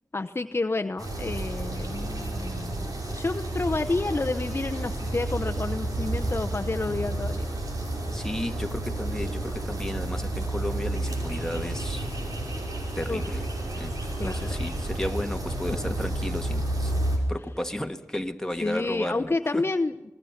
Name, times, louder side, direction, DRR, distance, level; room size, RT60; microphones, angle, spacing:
voice 1, 0.1-2.8 3.1-7.5 13.1-13.2 14.2-14.6 15.7-15.8 18.6-19.9, left 3 dB, 40° left, 7 dB, 0.8 m, -29 dB
sound 1, 1.0-17.2, right 1 dB, 85° right, 5.8 m, -31 dB
voice 2, 8.1-12.1 13.0-13.4 13.7-14.0 14.2-17.0 17.3-19.7, left 1 dB, 10° left, 5 dB, 1.7 m, -33 dB
27.5 x 20.5 x 5.9 m, 1.1 s
wide cardioid pair, 55°, 6 cm